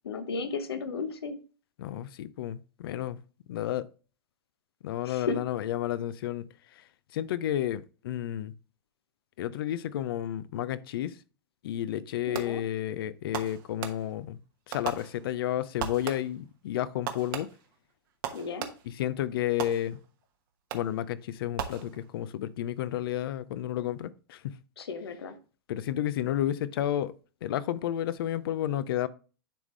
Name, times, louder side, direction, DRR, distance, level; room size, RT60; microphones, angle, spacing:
voice 1, 0.0-1.4 5.0-5.4 12.3-12.6 18.3-18.7 24.8-25.4, left 4 dB, 85° left, 0.9 m, -34 dB
voice 2, 1.8-3.2 3.5-3.9 4.8-6.5 6.7-6.8 7.1-8.5 9.4-11.2 11.6-14.4 14.7-17.5 19.0-20.0 20.7-24.6 25.7-27.1 27.4-29.1, left 12 dB, 65° left, 0.5 m, -31 dB
Fireworks, 12.3-12.8 13.3-14.3 14.7-15.5 15.8-16.5 17.1-19.0 19.6-20.2 20.7-21.1 21.6-22.3, right 9 dB, 60° right, 1.1 m, -39 dB
10.0 x 3.6 x 3.1 m
hypercardioid pair, 110°, 13 cm